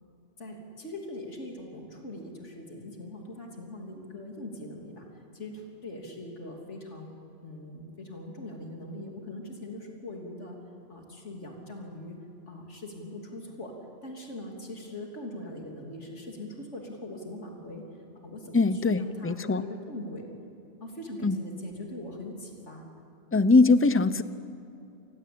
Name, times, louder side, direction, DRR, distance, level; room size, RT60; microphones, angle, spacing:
voice 1, 0.4-7.1 7.4-10.6 10.9-12.2 12.5-13.7 14.0-17.8 18.2-20.3 20.8-22.9, left 1 dB, 75° left, 1 dB, 3.6 m, -41 dB
voice 2, 18.5-19.6 21.2-21.4 23.3-24.2, left 3 dB, 15° left, 13 dB, 0.6 m, -22 dB
29.0 x 20.5 x 8.7 m, 2.8 s
omnidirectional pair, 1.2 m